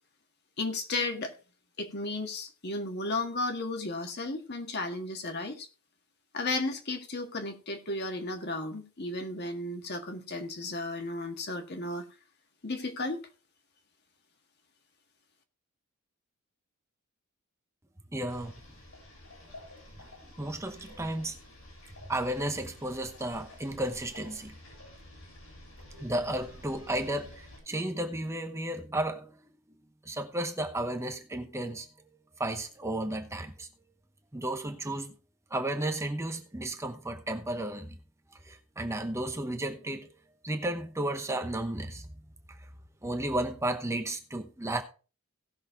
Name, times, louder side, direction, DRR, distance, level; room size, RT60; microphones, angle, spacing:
voice 1, 0.6-1.3 1.8-5.7 6.3-12.1 12.6-13.2, left 2 dB, 50° left, 1.7 m, -34 dB
voice 2, 18.1-18.5 20.2-21.4 22.1-24.5 26.0-29.5 30.0-31.9 32.4-33.7 34.3-35.1 35.5-38.0 38.4-40.1 40.4-42.1 42.5-42.7 43.0-44.8, right 1 dB, 15° right, 0.9 m, -33 dB
sound 1, 18.3-27.6, left 1 dB, 75° left, 7.0 m, -51 dB
17.5 x 6.4 x 3.6 m
head